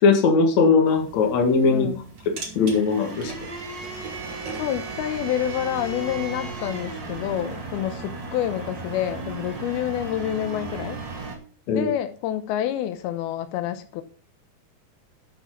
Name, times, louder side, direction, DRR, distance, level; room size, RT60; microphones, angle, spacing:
voice 1, 0.0-1.9 2.3-3.3 11.7-11.9, left 4 dB, 55° left, 2.8 m, -19 dB
sound 1, 0.9-11.4, right 4 dB, 35° right, 2.6 m, -35 dB
voice 2, 1.7-2.0 4.6-11.0 11.7-14.0, left 11 dB, 85° left, 2.7 m, -28 dB
12.0 x 5.9 x 5.7 m
omnidirectional pair, 4.4 m